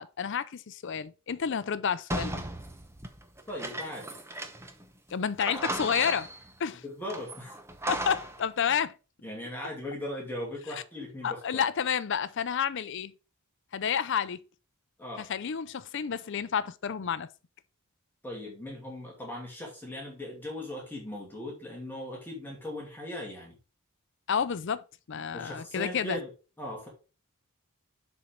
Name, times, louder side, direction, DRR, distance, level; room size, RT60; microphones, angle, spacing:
voice 1, 0.0-2.4 5.1-6.3 6.6-6.8 7.9-8.9 11.2-13.1 13.7-14.4 15.2-17.3 24.3-24.8 25.1-26.2, left 7 dB, 55° left, 0.5 m, -30 dB
sound 1, 2.1-4.8 5.1-5.2 5.4-6.5 7.1-8.4, right 1 dB, 10° right, 0.8 m, -36 dB
voice 2, 3.5-4.2 6.8-7.5 9.2-11.6 15.0-15.3 18.2-23.6 25.3-26.3 26.6-26.9, left 1 dB, 10° left, 2.3 m, -39 dB
7.1 x 4.5 x 5.1 m
head